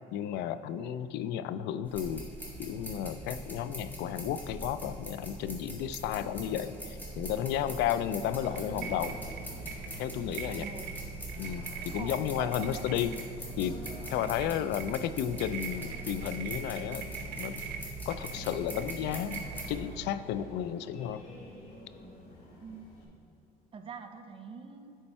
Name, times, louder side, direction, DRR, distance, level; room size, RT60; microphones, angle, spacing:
voice 1, 0.1-2.2 2.6-9.1 10.0-10.8 11.4-13.1 13.6-13.8 14.1-17.7 18.1-19.4 19.7-21.2, left 10 dB, 85° left, 13 dB, 0.4 m, -33 dB
sound 1, 1.9-19.7, equal, 10° left, 1.6 m, -43 dB
Singing, 7.0-23.0, left 1 dB, 60° left, 1.9 m, -49 dB
sound 2, 8.3-20.1, right 6 dB, 75° right, 0.9 m, -42 dB
voice 2, 10.3-10.9 12.0-12.8 22.6-22.9 23.7-25.0, right 6 dB, 30° right, 6 dB, 0.6 m, -45 dB
10.5 x 4.4 x 4.3 m, 2.6 s
cardioid pair, 110°, 17 cm